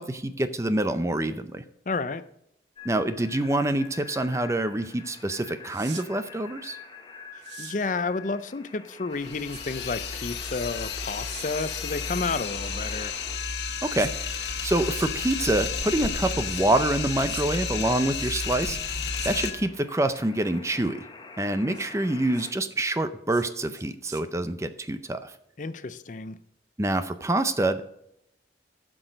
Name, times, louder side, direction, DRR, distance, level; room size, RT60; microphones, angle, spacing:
voice 1, 0.0-1.6 2.8-6.8 13.8-21.0 21.4-25.3 26.8-27.8, right 1 dB, 15° right, 11 dB, 0.5 m, -26 dB
voice 2, 1.9-2.2 7.6-13.2 25.6-26.4, left 3 dB, 45° left, 13 dB, 0.5 m, -31 dB
sound 1, 2.8-22.5, left 5 dB, 25° left, 1.0 m, -45 dB
sound 2, 5.7-6.1 7.4-7.8 9.5-9.6 11.3-11.5 12.4-13.0 14.0-14.1 14.9-15.1 16.4-16.7 17.2-17.5 18.1-18.6 19.1-19.3 21.7-21.9 22.3-22.5 23.3-23.5 23.7-24.2, right 10 dB, 80° right, 0.9 m, -44 dB
sound 3, 9.1-19.5, left 5 dB, 70° left, 1.4 m, -32 dB
12.0 x 6.2 x 5.1 m, 0.77 s
head